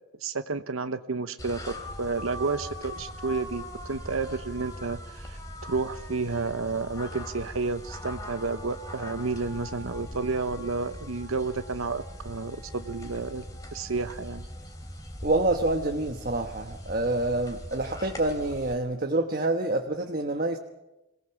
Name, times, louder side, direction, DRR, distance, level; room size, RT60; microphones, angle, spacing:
voice 1, 0.2-1.7 2.0-13.4 13.7-14.5, right 4 dB, 90° right, 10 dB, 1.0 m, -31 dB
sound 1, 1.4-18.7, equal, 15° left, 3.0 m, -41 dB
voice 2, 15.2-20.6, right 2 dB, 45° right, 3 dB, 1.3 m, -27 dB
26.0 x 18.5 x 7.2 m, 0.97 s
head